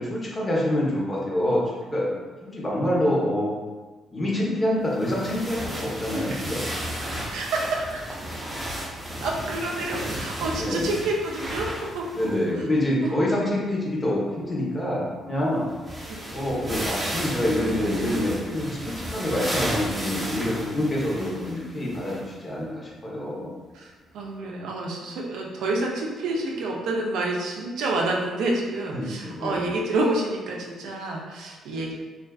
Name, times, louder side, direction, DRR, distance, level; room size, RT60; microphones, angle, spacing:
voice 1, 0.0-2.1 2.4-3.5 4.1-6.6 10.5-10.9 12.1-15.7 16.3-23.5 28.9-29.7 31.7-31.9, left 1 dB, 25° left, -5 dB, 0.7 m, -26 dB
sound 1, 5.0-12.5 12.7-12.8 15.4-15.5 15.7-22.3 22.9-23.0 24.2-24.3, right 1 dB, 20° right, 0.6 m, -33 dB
voice 2, 7.0-8.2 9.2-11.7 11.9-12.7 13.0-13.1 16.1-16.2 23.7-31.9, right 2 dB, 85° right, -1 dB, 0.4 m, -28 dB
2.4 x 2.3 x 2.3 m, 1.3 s
cardioid pair, 90°, 0 cm